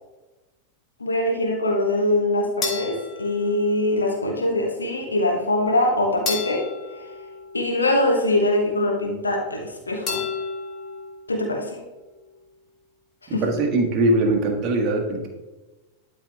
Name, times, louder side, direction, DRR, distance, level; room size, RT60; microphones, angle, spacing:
voice 1, 1.0-6.6 6.9-7.1 7.5-10.2 11.3-11.8 13.2-13.4, left 1 dB, 75° left, 0 dB, 1.3 m, -23 dB
sound 1, 2.6-4.1 6.3-8.1 10.1-11.2, left 5 dB, 30° left, 1.9 m, -32 dB
voice 2, 13.4-15.3, right 2 dB, 35° right, 2 dB, 1.5 m, -21 dB
12.0 x 4.1 x 3.5 m, 1.1 s
figure-of-eight pair, 90°, 0 cm